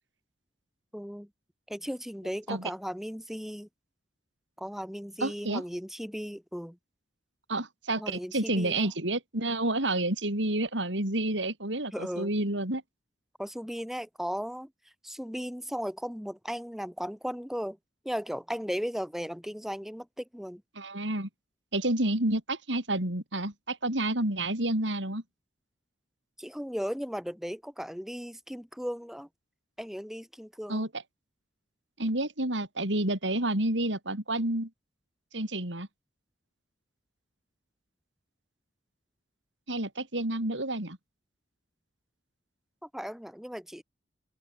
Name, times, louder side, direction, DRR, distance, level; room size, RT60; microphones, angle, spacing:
voice 1, 0.9-1.3 1.7-3.7 4.6-6.8 8.0-8.9 11.9-12.3 13.4-14.7 15.0-17.8 18.0-20.6 26.4-29.3 29.8-30.9 42.8-43.8, equal, ahead, 3.8 m, -36 dB
voice 2, 5.2-5.6 7.5-12.8 20.8-21.3 21.7-25.2 30.7-30.9 32.0-34.7 35.3-35.9 39.7-41.0, right 1 dB, 80° right, 5.9 m, -29 dB
open air
head